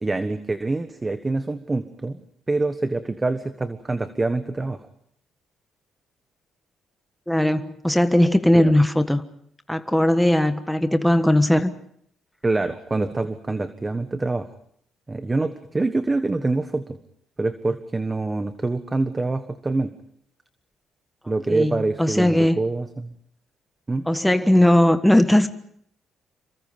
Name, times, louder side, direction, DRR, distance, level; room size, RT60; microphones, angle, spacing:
voice 1, 0.0-2.2 2.5-4.9 8.5-8.7 12.4-14.5 15.1-17.0 17.4-19.9 21.3-23.1 23.9-24.0, right 3 dB, 20° right, 10 dB, 1.4 m, -25 dB
voice 2, 7.3-9.2 9.7-11.7 21.5-22.6 24.1-25.5, left 1 dB, 5° left, 8 dB, 1.4 m, -18 dB
28.0 x 24.0 x 5.2 m, 0.66 s
cardioid pair, 90°, 0 cm